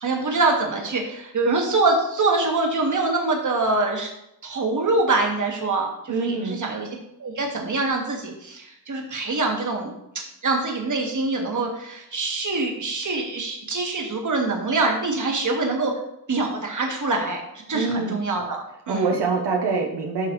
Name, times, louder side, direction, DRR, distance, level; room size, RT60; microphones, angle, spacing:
voice 1, 0.0-4.1 4.4-6.9 7.2-9.9 10.4-16.0 16.3-17.4 17.7-19.1, right 3 dB, 50° right, 1 dB, 1.6 m, -24 dB
voice 2, 6.1-6.6 17.7-18.2 18.9-20.3, right 4 dB, 85° right, 1 dB, 0.9 m, -25 dB
11.5 x 3.9 x 3.1 m, 0.80 s
cardioid pair, 80°, 40 cm